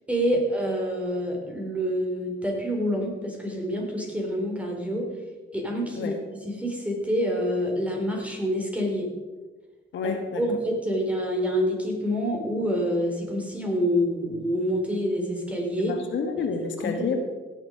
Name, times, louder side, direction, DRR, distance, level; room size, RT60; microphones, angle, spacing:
voice 1, 0.1-5.1 5.5-6.1 6.4-9.1 10.0-16.0 16.4-16.5 16.8-17.2, equal, 5° right, 0 dB, 3.9 m, -27 dB
voice 2, 9.9-10.4 15.8-17.2, left 5 dB, 70° left, 4 dB, 1.6 m, -29 dB
17.0 x 7.4 x 5.1 m, 1.3 s
cardioid pair, 90°, 20 cm